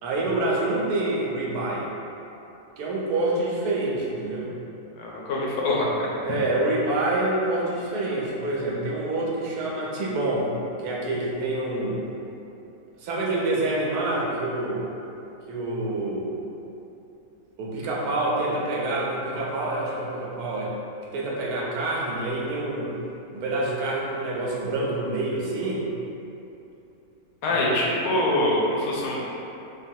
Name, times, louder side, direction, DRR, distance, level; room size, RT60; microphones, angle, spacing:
voice 1, 0.0-1.8 2.8-4.5 6.2-10.5 10.8-12.0 13.0-14.8 15.5-16.4 17.6-20.7 21.1-22.9 23.3-25.8 27.5-27.9, right 2 dB, 85° right, -4 dB, 1.1 m, -27 dB
voice 2, 5.0-6.1 27.4-29.2, left 1 dB, 70° left, -4 dB, 1.0 m, -24 dB
3.7 x 2.0 x 2.7 m, 2.8 s
omnidirectional pair, 1.6 m